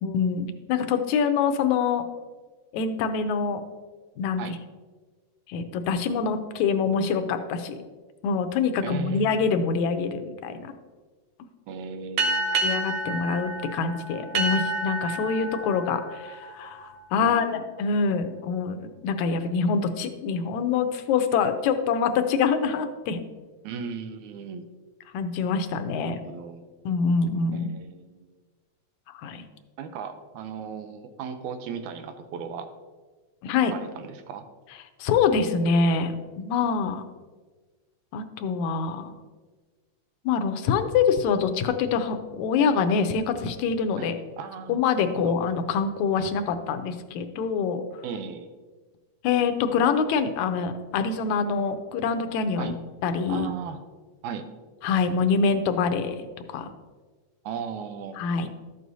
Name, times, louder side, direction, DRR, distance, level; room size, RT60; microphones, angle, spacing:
voice 1, 0.0-2.0 2.7-3.6 4.2-4.4 5.5-7.8 8.2-10.7 12.6-23.2 25.1-26.2 26.9-27.7 29.1-29.4 33.4-33.7 35.0-37.0 38.1-39.1 40.3-44.2 44.7-47.8 49.2-52.8 53.0-53.5 54.8-56.2 56.5-56.7 58.2-58.5, left 5 dB, 80° left, 8 dB, 2.0 m, -25 dB
voice 2, 8.8-9.5 11.7-12.6 17.2-17.6 23.6-24.7 25.9-26.6 27.5-28.2 29.8-32.7 33.7-34.5 44.0-44.1 44.4-44.8 45.1-45.4 48.0-48.5 52.6-52.7 53.3-53.8 54.2-54.5 57.5-58.2, right 6 dB, 90° right, 9 dB, 2.1 m, -36 dB
sound 1, 12.2-17.3, right 2 dB, 70° right, 1.4 m, -29 dB
12.5 x 7.7 x 2.7 m, 1.4 s
omnidirectional pair, 3.3 m